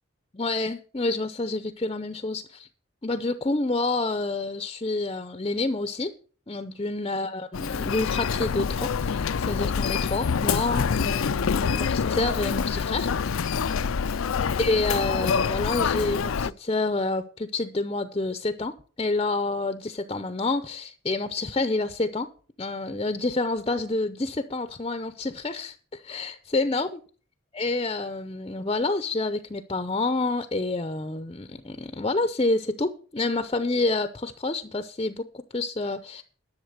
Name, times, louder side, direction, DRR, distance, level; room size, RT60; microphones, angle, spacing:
voice 1, 0.3-2.7 3.0-6.1 6.5-13.1 14.2-14.3 14.6-22.3 22.6-27.0 27.5-36.2, left 2 dB, 25° left, 10 dB, 0.6 m, -28 dB
Human voice, 7.5-16.5, left 6 dB, 85° left, 0.5 m, -26 dB
11.0 x 7.2 x 6.7 m, 0.41 s
head